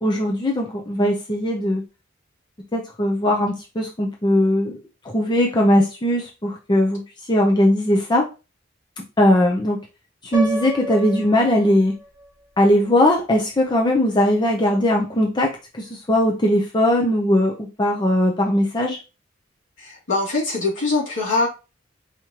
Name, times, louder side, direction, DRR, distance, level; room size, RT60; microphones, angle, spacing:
voice 1, 0.0-1.8 2.7-4.8 5.0-7.0 7.3-8.3 9.2-9.8 10.2-11.9 12.6-19.0, left 1 dB, 25° left, 0 dB, 0.6 m, -19 dB
Piano, 10.3-12.3, right 1 dB, 20° right, 1.5 m, -31 dB
voice 2, 19.8-21.5, left 3 dB, 70° left, -5 dB, 2.6 m, -22 dB
4.9 x 3.1 x 2.9 m, 0.30 s
head